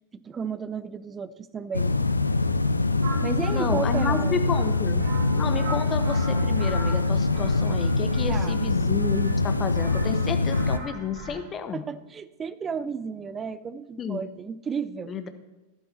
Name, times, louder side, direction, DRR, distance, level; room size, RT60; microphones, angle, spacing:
voice 1, 0.1-2.0 3.2-4.5 8.3-8.6 11.7-15.1, right 6 dB, 20° right, 15 dB, 0.6 m, -33 dB
sound 1, 1.7-10.8, left 3 dB, 80° left, 0.6 m, -24 dB
sound 2, 3.0-11.4, right 2 dB, 55° right, 3.8 m, -39 dB
voice 2, 3.5-5.1 5.3-11.8 14.0-14.2 15.1-15.3, left 6 dB, 25° left, 9 dB, 1.1 m, -31 dB
13.0 x 11.5 x 4.4 m, 1.1 s
figure-of-eight pair, 90°, 0 cm